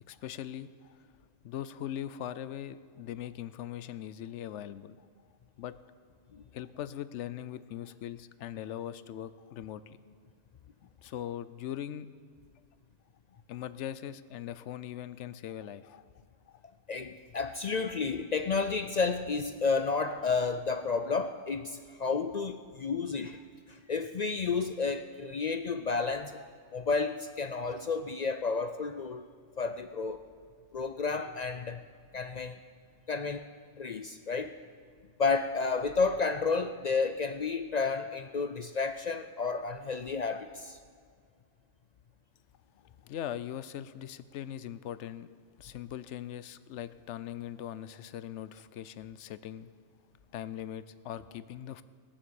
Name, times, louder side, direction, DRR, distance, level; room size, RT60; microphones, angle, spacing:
voice 1, 0.1-1.0 1.4-5.0 5.6-5.7 6.5-10.0 11.0-12.1 13.5-16.1 16.5-16.6 43.1-45.3 45.6-49.7 50.3-51.8, left 11 dB, 75° left, 15 dB, 0.9 m, -40 dB
voice 2, 16.9-23.4 23.7-26.4 26.7-29.3 29.6-30.2 30.7-31.8 32.1-32.6 33.1-33.5 33.8-34.6 35.2-40.8, left 4 dB, 55° left, 8 dB, 0.4 m, -31 dB
20.5 x 7.3 x 7.0 m, 2.1 s
omnidirectional pair, 1.2 m